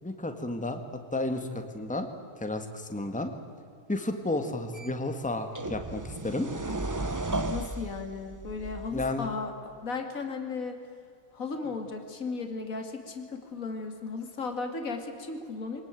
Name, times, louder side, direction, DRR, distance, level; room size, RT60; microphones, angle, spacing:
voice 1, 0.0-0.8 1.1-2.1 2.4-3.3 3.9-6.5 8.9-9.3, left 2 dB, 5° left, 6 dB, 1.8 m, -32 dB
sound 1, 4.7-4.9 5.5-9.3, right 2 dB, 20° right, 0.6 m, -34 dB
voice 2, 7.5-10.8 11.3-15.8, left 4 dB, 60° left, 5 dB, 2.8 m, -35 dB
24.0 x 19.5 x 9.2 m, 2.3 s
omnidirectional pair, 1.6 m